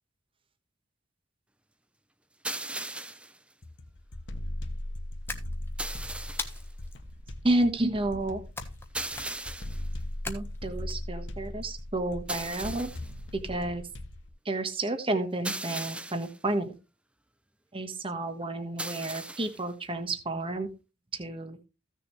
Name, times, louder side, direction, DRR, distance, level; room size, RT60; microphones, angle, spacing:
sound 1, 2.4-3.4 5.8-6.6 8.9-9.9 12.3-13.1 15.4-16.4 18.8-19.6, right 2 dB, 5° right, 0.5 m, -37 dB
sound 2, 3.6-14.3, left 1 dB, 60° left, 1.4 m, -39 dB
sound 3, 5.3-5.9 6.4-7.0 8.6-8.9 9.1-9.6 10.2-10.9, left 3 dB, 10° left, 1.3 m, -39 dB
voice 1, 7.4-8.4 10.3-12.9 13.3-13.8 14.4-16.7 17.7-20.7 21.1-21.6, right 2 dB, 25° right, 8 dB, 1.3 m, -30 dB
15.5 x 6.8 x 3.2 m, 0.29 s
head